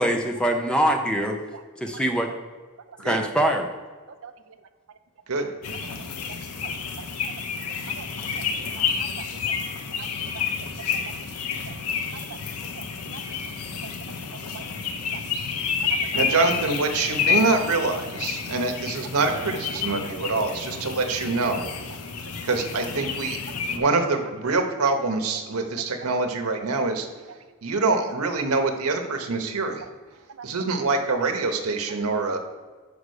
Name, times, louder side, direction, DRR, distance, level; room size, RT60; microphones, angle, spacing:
voice 1, 0.0-1.4 1.8-2.3 3.0-3.7, right 1 dB, 5° left, 4 dB, 0.6 m, -23 dB
voice 2, 1.9-2.4 2.9-3.2 4.1-5.0 5.8-5.9 6.2-8.1 8.3-9.6 10.0-11.2 11.5-11.8 12.1-12.4 12.7-13.4 13.7-14.7 15.0-15.2 15.8-16.2 18.4-18.6 19.4-19.5 20.0-20.3 20.9-21.0 21.4-21.5 23.6-23.8 26.0-26.1 29.8-29.9 30.3-30.7 31.0-31.3 31.9-32.1, right 6 dB, 65° right, 10 dB, 0.5 m, -45 dB
sound 1, 5.6-23.8, left 6 dB, 90° left, 0.7 m, -30 dB
voice 3, 16.1-21.7 22.4-23.4 23.7-27.1 27.6-29.8 30.4-32.4, right 3 dB, 80° right, 4 dB, 0.9 m, -25 dB
5.2 x 5.0 x 6.4 m, 1.4 s
head